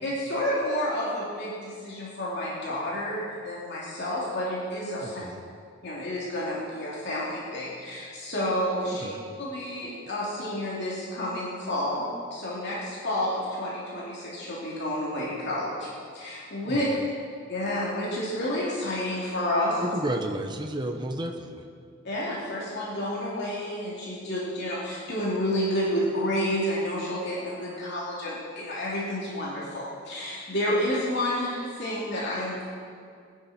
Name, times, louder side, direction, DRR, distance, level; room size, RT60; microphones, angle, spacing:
voice 1, 0.0-5.2 5.8-9.1 9.4-15.9 16.1-16.8 17.5-19.9 22.0-32.6, left 1 dB, 55° left, -6 dB, 3.0 m, -30 dB
voice 2, 5.0-5.4 8.9-9.2 16.7-16.8 19.8-21.6, right 1 dB, 20° right, 3 dB, 1.0 m, -32 dB
20.0 x 10.5 x 4.4 m, 2.2 s
head